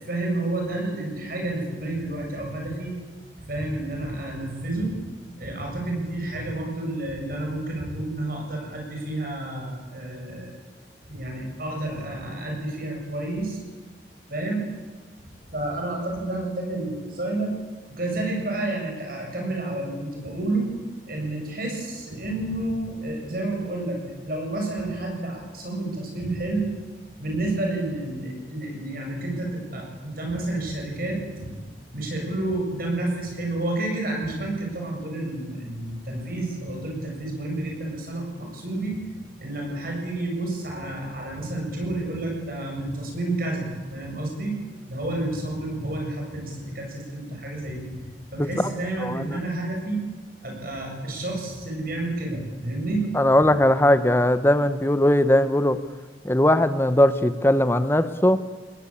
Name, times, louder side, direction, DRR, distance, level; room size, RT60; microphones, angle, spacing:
voice 1, 0.0-2.9 3.5-5.0 5.4-10.5 11.1-13.6 14.3-14.6 15.5-17.5 17.9-20.7 21.1-26.7 27.2-31.6 31.9-39.0 39.4-44.6 44.9-48.0 48.3-50.0 50.4-53.1, right 2 dB, 50° right, 1 dB, 7.3 m, -30 dB
voice 2, 49.0-49.4 53.1-55.8 56.2-58.4, left 1 dB, 10° left, 11 dB, 0.8 m, -19 dB
28.5 x 20.5 x 8.6 m, 1.3 s
head